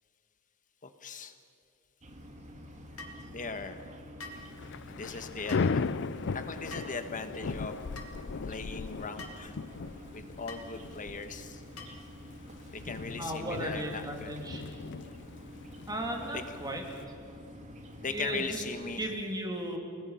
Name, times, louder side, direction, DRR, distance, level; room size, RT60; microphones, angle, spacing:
voice 1, 0.8-1.3 3.3-3.8 4.8-5.8 6.3-7.8 8.4-9.6 10.1-11.6 12.7-14.3 16.3-16.4 18.0-19.0, left 4 dB, 35° left, 8 dB, 1.4 m, -39 dB
sound 1, 2.0-19.1, equal, 35° right, 1.9 m, -48 dB
sound 2, 3.0-3.2 4.2-4.5 5.5-5.7 6.7-7.0 8.0-8.1 9.2-9.4 10.5-10.7 11.8-12.1, left 2 dB, 70° left, 2.4 m, -45 dB
Thunder / Rain, 4.4-17.0, left 4 dB, 55° left, 0.5 m, -38 dB
voice 2, 13.2-14.6 15.9-16.8 18.1-18.6 19.0-19.8, right 1 dB, 15° right, 2 dB, 3.0 m, -35 dB
29.5 x 19.5 x 5.8 m, 2.6 s
head